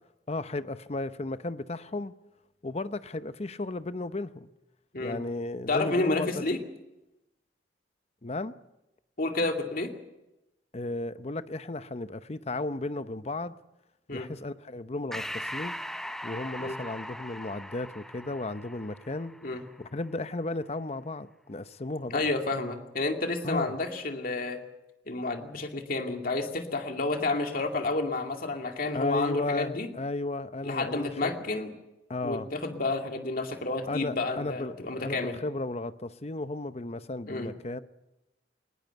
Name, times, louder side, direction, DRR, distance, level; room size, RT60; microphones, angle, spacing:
voice 1, 0.3-2.1 2.6-4.5 5.0-6.4 8.2-8.5 10.7-13.5 14.1-15.8 16.2-19.3 19.8-22.3 23.4-23.7 28.9-31.3 32.1-32.5 33.9-37.8, left 2 dB, 35° left, 0.7 m, -34 dB
voice 2, 5.7-6.6 9.2-9.9 14.1-14.3 16.6-16.8 19.4-19.6 22.1-24.6 25.1-29.9 30.6-31.7 32.2-35.4 37.3-37.5, left 2 dB, 50° left, 2.4 m, -30 dB
Breathing, 15.1-20.0, equal, ahead, 0.7 m, -40 dB
20.0 x 19.0 x 8.0 m
head